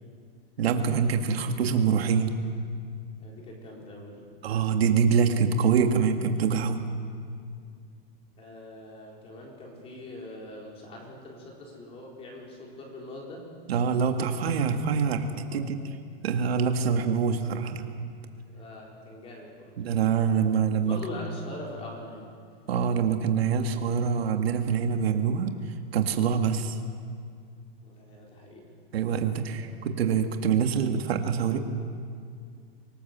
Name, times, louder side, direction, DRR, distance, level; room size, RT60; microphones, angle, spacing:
voice 1, 0.6-2.4 4.4-6.8 13.7-15.8 16.2-17.9 19.8-21.0 22.7-26.8 28.9-31.6, right 6 dB, 85° right, 5 dB, 2.1 m, -25 dB
voice 2, 3.2-4.3 8.4-13.6 15.5-15.7 18.4-19.8 20.7-22.3 27.8-28.7 29.4-29.5, left 1 dB, 20° left, -1 dB, 4.3 m, -42 dB
24.5 x 19.0 x 7.5 m, 2.3 s
supercardioid pair, 165°, 30 cm